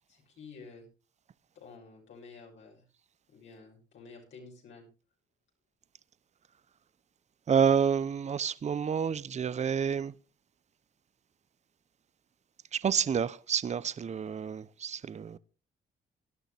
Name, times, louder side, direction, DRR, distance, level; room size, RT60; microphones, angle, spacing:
voice 1, 0.1-0.9 1.5-2.9 3.3-4.9, left 4 dB, 70° left, 6.0 m, -51 dB
voice 2, 7.5-10.1 12.7-15.4, right 7 dB, 35° right, 0.7 m, -29 dB
18.0 x 12.0 x 3.4 m
cardioid pair, 90°, 20 cm